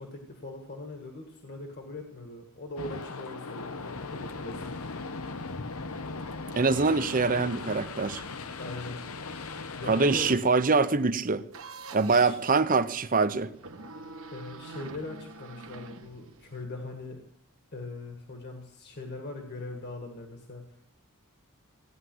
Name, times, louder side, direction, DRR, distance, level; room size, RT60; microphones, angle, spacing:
voice 1, 0.0-4.9 8.3-9.0 9.8-10.3 12.1-12.4 14.3-17.2 17.7-20.9, left 2 dB, 50° left, 1.9 m, -41 dB
sound 1, 2.8-10.4, left 3 dB, 70° left, 0.9 m, -38 dB
voice 2, 6.6-8.2 9.9-11.4 11.9-13.5, right 4 dB, 40° right, 0.8 m, -24 dB
sound 2, 11.5-12.4 13.5-16.6, right 3 dB, 65° right, 1.3 m, -45 dB
16.5 x 9.7 x 7.8 m
head